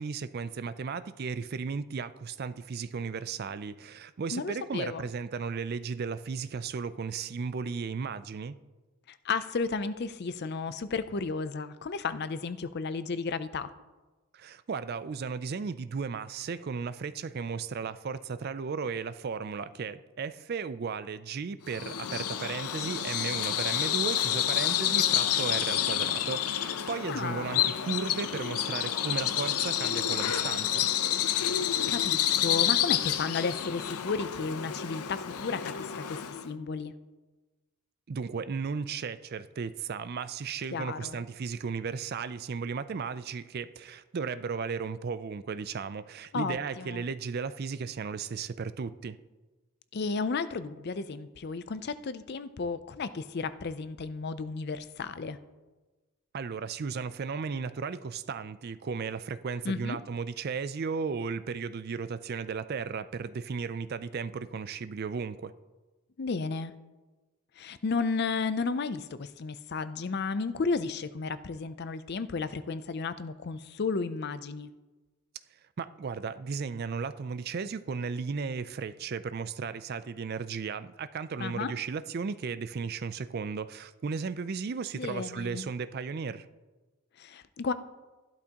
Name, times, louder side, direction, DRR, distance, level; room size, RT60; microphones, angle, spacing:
voice 1, 0.0-8.6 14.3-30.9 38.1-49.2 56.3-65.5 75.8-86.5, right 5 dB, 45° right, 0.4 m, -35 dB
voice 2, 4.3-5.0 9.1-13.7 27.1-27.8 31.9-36.2 36.4-36.9 40.7-41.2 46.3-47.0 49.9-55.4 59.6-60.0 66.2-66.7 67.6-74.7 81.4-81.7 84.9-85.7 87.2-87.7, left 4 dB, 45° left, 0.5 m, -33 dB
Bird vocalization bird call bird song, 21.7-36.5, left 10 dB, 85° left, 0.6 m, -29 dB
13.5 x 12.0 x 2.9 m
head